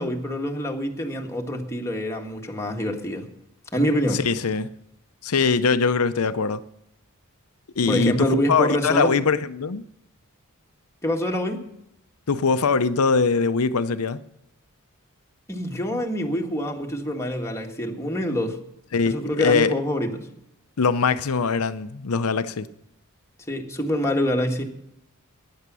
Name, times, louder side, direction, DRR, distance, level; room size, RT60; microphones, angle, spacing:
voice 1, 0.0-3.3 3.7-4.2 7.9-9.1 11.0-11.6 15.5-18.6 19.1-20.3 23.5-24.6, equal, 15° left, 1.6 m, -25 dB
voice 2, 4.1-4.7 5.2-6.6 7.8-9.8 12.3-14.2 18.9-19.7 20.8-22.7, left 5 dB, 75° left, 0.7 m, -22 dB
15.0 x 10.5 x 6.2 m
head